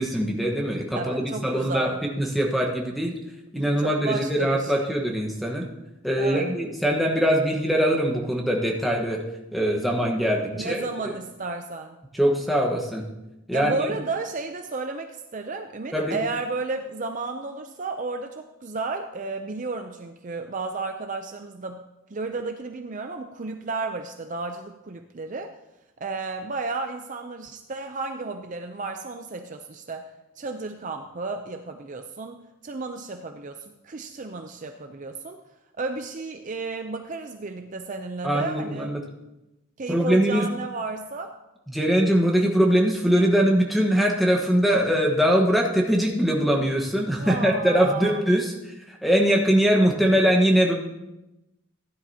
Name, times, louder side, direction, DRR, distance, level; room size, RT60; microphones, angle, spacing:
voice 1, 0.0-3.1 3.5-5.6 6.0-9.2 9.5-11.1 12.1-13.0 13.5-13.9 15.9-16.2 38.2-39.0 39.9-40.5 41.7-48.5 48.9-50.7, equal, ahead, -1 dB, 1.2 m, -22 dB
voice 2, 0.9-2.0 3.6-4.9 6.2-6.5 10.5-12.0 13.5-21.8 22.1-25.5 26.0-35.4 35.8-38.9 39.8-41.4 47.2-48.2, right 3 dB, 35° right, 6 dB, 0.5 m, -33 dB
15.5 x 10.0 x 2.8 m, 0.97 s
head